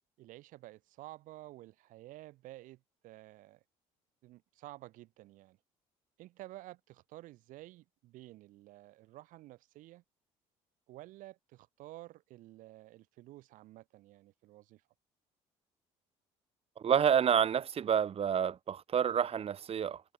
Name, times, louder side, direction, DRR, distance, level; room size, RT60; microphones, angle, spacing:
voice 1, 0.2-3.6 4.2-5.6 6.2-10.0 10.9-14.8, right 17 dB, 75° right, 3.0 m, -52 dB
voice 2, 16.8-20.0, right 8 dB, 45° right, 1.2 m, -29 dB
supercardioid pair, 75°, 14 cm